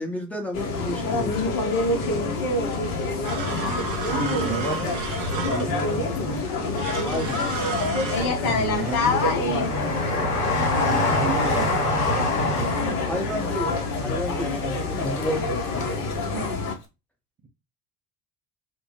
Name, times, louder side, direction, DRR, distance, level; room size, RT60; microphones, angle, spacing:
voice 1, 0.0-1.6 7.0-7.4 12.4-16.0, equal, 5° left, 0.8 m, -32 dB
sound 1, 0.5-16.7, left 3 dB, 45° left, 0.8 m, -26 dB
sound 2, 3.2-5.9 6.8-8.3, right 4 dB, 65° right, 0.8 m, -32 dB
Train, 4.0-5.3 5.7-6.7 7.2-16.0 16.2-16.3, left 2 dB, 75° left, 0.8 m, -28 dB
voice 2, 4.1-5.1 5.5-6.8 8.4-10.3 10.9-12.0 16.3-16.6, right 5 dB, 20° right, 0.5 m, -33 dB
2.1 x 2.1 x 3.1 m
figure-of-eight pair, 60°, 47 cm